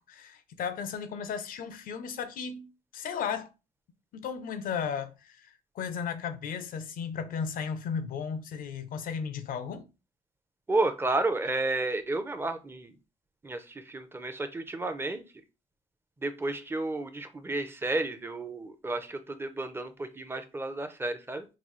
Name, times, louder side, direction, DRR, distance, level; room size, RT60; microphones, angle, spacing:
voice 1, 0.0-2.7 2.9-3.5 4.1-9.9, left 6 dB, 80° left, 0.6 m, -35 dB
voice 2, 10.7-12.9 13.4-15.2 16.2-21.5, right 2 dB, 15° right, 0.6 m, -31 dB
3.9 x 2.3 x 3.1 m
cardioid pair, 90°, 15 cm